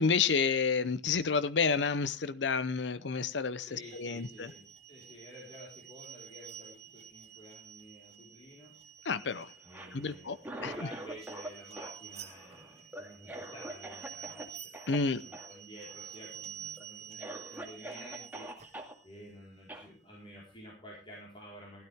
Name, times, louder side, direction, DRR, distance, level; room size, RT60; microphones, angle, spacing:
voice 1, 0.0-4.5 9.0-9.5 9.9-10.4 10.6-10.7 14.9-15.2, left 5 dB, 80° left, 15 dB, 0.7 m, -30 dB
voice 2, 3.6-8.7 9.6-14.5 14.9-18.5 19.0-21.8, equal, 30° left, -4 dB, 4.4 m, -51 dB
sound 1, 3.8-20.7, right 9 dB, 40° right, 1.8 m, -50 dB
Cough, 9.6-11.5 11.8-14.4 14.7-15.0 15.3-15.5 15.8-16.3 16.8-16.9 17.2-18.9 19.7-19.9, right 1 dB, 10° right, 2.2 m, -44 dB
16.0 x 12.5 x 3.5 m, 0.33 s
head